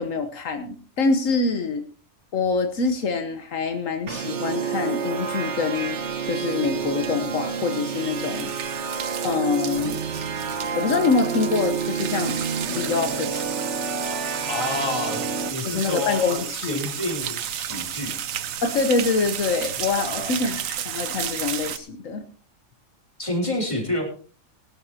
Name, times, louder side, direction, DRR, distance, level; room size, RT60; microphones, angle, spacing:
voice 1, 0.0-1.8 2.3-6.0 6.3-8.5 9.2-10.0 10.7-12.4 12.7-13.6 15.6-16.9 18.6-22.2, left 4 dB, 75° left, 7 dB, 1.4 m, -25 dB
sound 1, 4.1-15.5, right 6 dB, 60° right, 1.4 m, -29 dB
sound 2, 6.1-21.8, right 10 dB, 85° right, 1.2 m, -33 dB
voice 2, 14.5-15.2 15.5-18.1 20.0-20.4 23.2-24.1, left 2 dB, 25° left, 0 dB, 3.3 m, -28 dB
20.0 x 11.5 x 2.8 m, 0.39 s
omnidirectional pair, 1.4 m